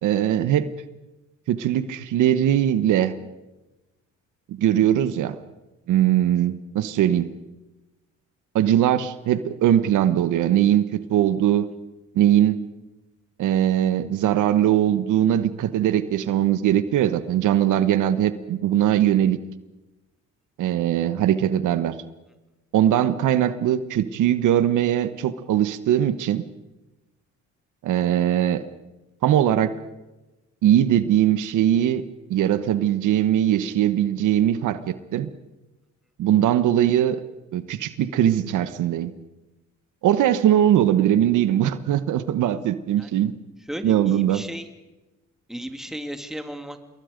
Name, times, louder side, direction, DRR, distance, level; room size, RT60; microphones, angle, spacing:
voice 1, 0.0-0.7 1.5-3.1 4.5-5.4 5.9-7.3 8.5-11.7 12.1-12.6 13.4-19.4 20.6-21.9 22.7-26.4 27.8-28.6 29.2-29.8 30.6-32.0 32.3-35.3 36.2-37.2 37.5-39.1 40.0-43.3 43.8-44.5, right 11 dB, 80° right, 13 dB, 1.2 m, -20 dB
voice 2, 43.7-44.7 45.5-46.8, equal, ahead, 6 dB, 2.5 m, -34 dB
27.5 x 21.5 x 5.2 m, 1.1 s
cardioid pair, 90°, 30 cm